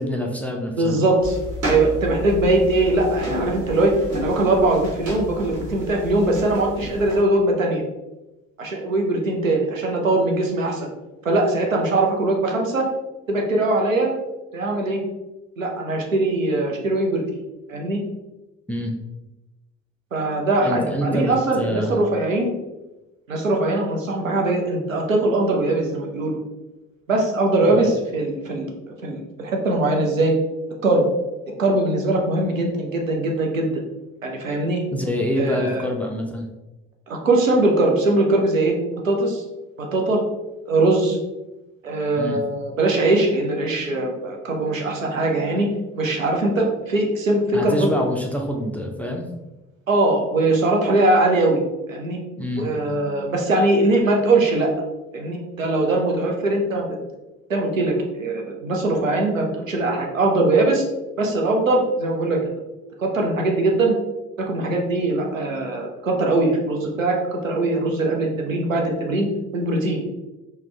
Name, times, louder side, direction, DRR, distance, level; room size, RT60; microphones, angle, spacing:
voice 1, 0.0-1.0 18.7-18.9 20.6-22.0 27.7-27.8 34.9-36.5 42.2-42.4 47.5-49.3 52.4-52.7, equal, 5° left, 2 dB, 0.3 m, -26 dB
voice 2, 0.8-1.4 1.6-7.8 8.6-10.9 11.2-12.9 13.3-14.1 14.5-15.0 15.6-17.2 17.7-18.0 20.1-22.5 23.3-26.4 27.1-28.7 29.0-30.3 30.8-31.1 31.6-33.7 34.2-34.8 35.4-35.9 37.1-38.8 39.0-39.4 39.8-40.2 40.7-41.2 41.8-45.7 45.9-47.9 49.9-51.6 51.9-52.2 52.6-54.7 55.1-56.9 57.5-60.8 61.2-62.4 63.0-63.9 64.4-69.3 69.5-70.0, right 2 dB, 90° right, 1 dB, 0.5 m, -21 dB
sound 1, 1.2-7.2, left 1 dB, 40° right, 1.4 m, -31 dB
3.4 x 2.1 x 3.2 m, 1.0 s
figure-of-eight pair, 50°, 38 cm